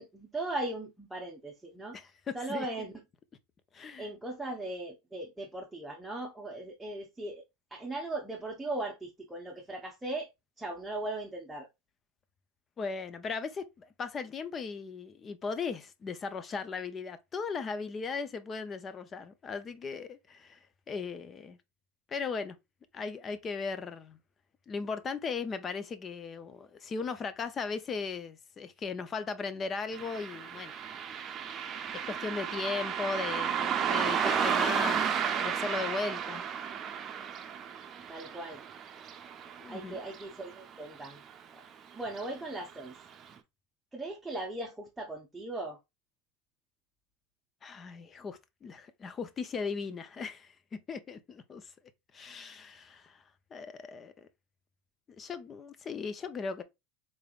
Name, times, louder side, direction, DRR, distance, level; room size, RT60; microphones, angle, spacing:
voice 1, 0.0-2.0 2.3-3.0 4.0-7.4 7.7-10.3 10.6-11.7 38.1-38.6 39.7-41.2 41.9-43.0 43.9-45.8, right 2 dB, 5° right, 0.9 m, -38 dB
voice 2, 1.9-2.7 3.7-4.1 12.8-20.6 20.9-21.6 22.1-22.6 22.9-24.2 24.7-30.8 31.9-35.0 35.4-36.4 39.6-40.0 47.6-51.7 52.1-53.2 53.5-54.3 55.2-56.6, left 5 dB, 30° left, 0.6 m, -37 dB
Car passing by, 29.9-40.7 41.0-41.1 42.1-42.3 42.7-42.8 43.3-43.4, right 8 dB, 35° right, 0.7 m, -33 dB
3.9 x 3.2 x 2.4 m
hypercardioid pair, 105°, 0 cm